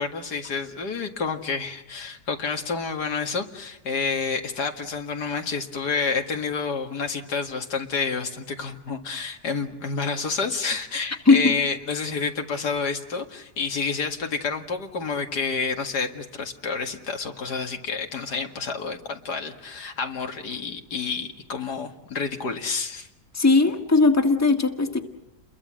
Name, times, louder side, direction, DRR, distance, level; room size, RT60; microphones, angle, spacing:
voice 1, 0.0-23.1, left 5 dB, 90° left, 4 dB, 2.6 m, -29 dB
voice 2, 11.2-11.6 23.3-25.0, left 3 dB, 10° left, 5 dB, 1.6 m, -18 dB
30.0 x 22.5 x 7.7 m, 0.91 s
omnidirectional pair, 1.7 m